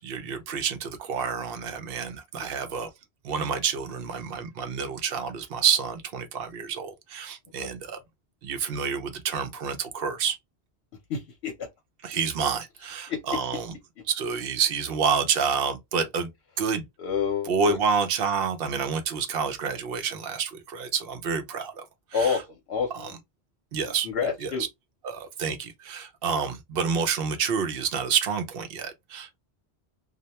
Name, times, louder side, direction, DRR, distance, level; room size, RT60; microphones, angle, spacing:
voice 1, 0.0-2.9 3.2-8.0 8.4-10.4 12.0-13.7 14.1-16.3 16.6-16.8 17.5-21.8 22.2-22.3 23.7-24.1 24.4-24.5 25.0-29.4, right 6 dB, 65° right, 0.7 m, -28 dB
voice 2, 2.4-2.7 7.6-7.7 11.1-11.7 13.1-13.4 17.0-17.8 22.1-23.2 23.8-24.7, left 6 dB, 75° left, 0.9 m, -29 dB
2.3 x 2.1 x 2.8 m
omnidirectional pair, 1.1 m